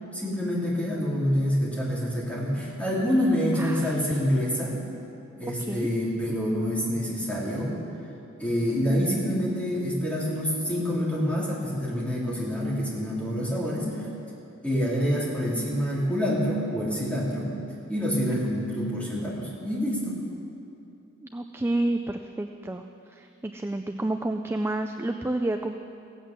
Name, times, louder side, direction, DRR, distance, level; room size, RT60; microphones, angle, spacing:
voice 1, 0.1-4.8 5.4-7.8 8.4-14.0 14.6-17.5 17.9-20.2, equal, 5° left, -6 dB, 3.2 m, -27 dB
voice 2, 3.6-3.9 5.6-5.9 21.2-25.8, right 2 dB, 10° right, 6 dB, 0.4 m, -30 dB
16.5 x 8.2 x 7.3 m, 2.7 s
head